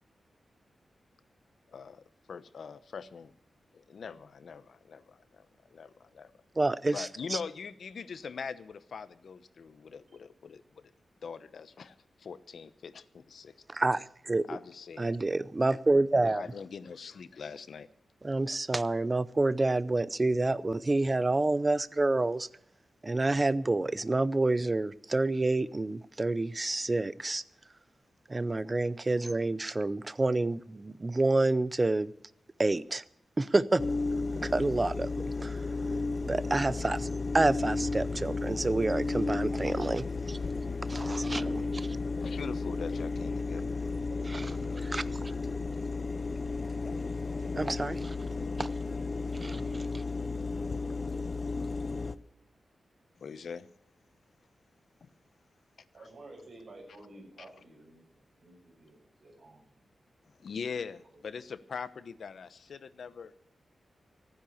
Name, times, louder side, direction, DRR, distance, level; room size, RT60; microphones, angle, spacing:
voice 1, 1.7-3.3 3.7-5.4 5.7-6.3 6.9-10.9 11.2-13.5 14.5-15.2 16.2-17.9 41.9-43.8 44.6-44.7 53.2-53.7 55.0-55.1 60.2-63.3, left 6 dB, 65° left, 14 dB, 0.9 m, -42 dB
voice 2, 6.6-7.4 13.7-14.4 15.0-16.4 18.2-22.5 23.0-27.4 28.3-32.1 32.6-33.0 33.4-33.8 34.4-35.7 36.3-37.1 37.3-40.4 40.9-41.6 41.9-42.0 44.3-44.5 44.9-45.3 47.6-48.3 48.6-48.7 49.4-49.5, right 2 dB, 20° right, 16 dB, 0.5 m, -28 dB
sound 1, 33.8-52.2, left 3 dB, 35° left, 0.7 m, -33 dB
voice 3, 35.9-36.6 40.9-41.7 44.1-44.8 45.0-45.4 47.4-48.1 49.1-49.7 55.9-59.8, right 2 dB, 50° right, 0 dB, 7.1 m, -53 dB
15.5 x 10.0 x 7.1 m, 0.70 s
wide cardioid pair, 170°, 0 cm